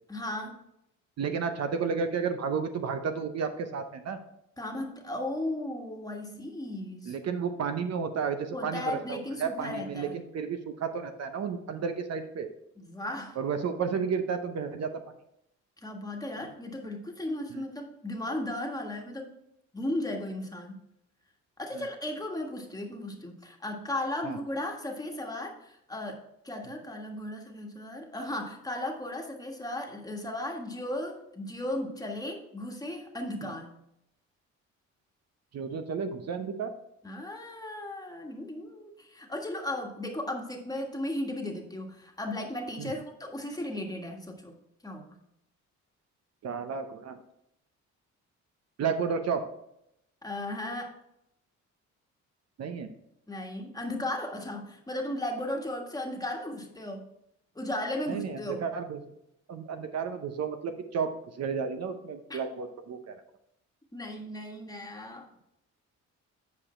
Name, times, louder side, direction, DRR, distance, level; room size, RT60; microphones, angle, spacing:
voice 1, 0.1-0.6 4.6-7.1 8.5-10.1 12.8-13.4 15.8-19.4 19.7-20.8 21.6-33.8 37.0-44.6 44.8-45.2 50.2-51.0 53.3-57.0 57.5-58.6 62.3-62.4 63.9-65.3, left 1 dB, 10° left, 1 dB, 1.5 m, -36 dB
voice 2, 1.2-4.2 7.1-12.5 13.4-14.9 17.5-17.6 21.7-21.9 24.2-24.4 33.4-33.5 35.5-36.7 42.8-42.9 46.4-47.2 48.8-49.4 52.6-52.9 58.1-59.0 59.5-63.2, right 6 dB, 60° right, 8 dB, 0.8 m, -32 dB
8.4 x 5.1 x 4.3 m, 0.79 s
cardioid pair, 90°, 30 cm